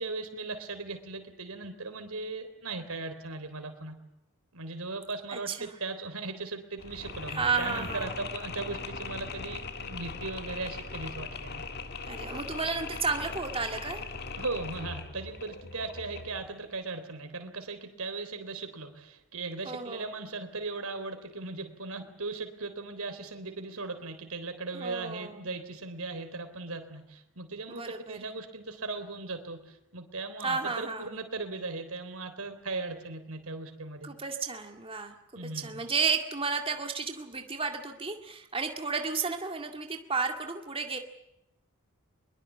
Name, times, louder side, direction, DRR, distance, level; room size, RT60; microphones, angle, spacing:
voice 1, 0.0-4.0 4.5-11.6 14.4-27.8 28.1-34.1 35.4-35.8, right 3 dB, 75° right, 8 dB, 3.6 m, -38 dB
voice 2, 5.3-5.8 7.3-8.3 12.1-14.0 19.7-20.1 24.7-25.5 27.7-28.2 30.4-31.2 34.0-35.2 35.4-41.0, right 4 dB, 25° right, 4 dB, 2.0 m, -32 dB
Mechanisms, 6.8-16.5, left 4 dB, 45° left, 1.9 m, -40 dB
23.0 x 22.5 x 8.5 m, 0.87 s
head